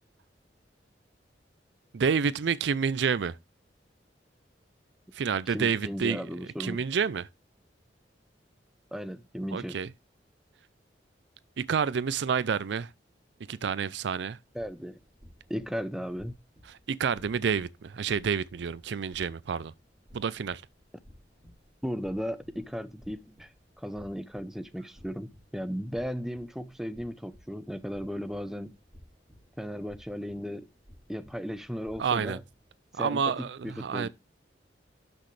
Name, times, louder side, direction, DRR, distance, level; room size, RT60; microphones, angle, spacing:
voice 1, 1.9-3.4 5.1-6.2 6.6-7.3 9.5-9.9 11.6-12.9 13.5-14.4 16.7-19.7 20.1-20.6 32.0-32.4 32.9-34.1, right 6 dB, 75° right, 0.4 m, -29 dB
voice 2, 5.5-6.8 8.9-9.8 14.5-15.0 15.5-16.4 21.8-23.5 23.8-28.7 29.6-30.7 31.1-32.4 33.0-34.1, equal, ahead, 0.7 m, -36 dB
sound 1, 14.4-32.7, equal, 20° right, 4.7 m, -57 dB
12.0 x 6.1 x 3.2 m
head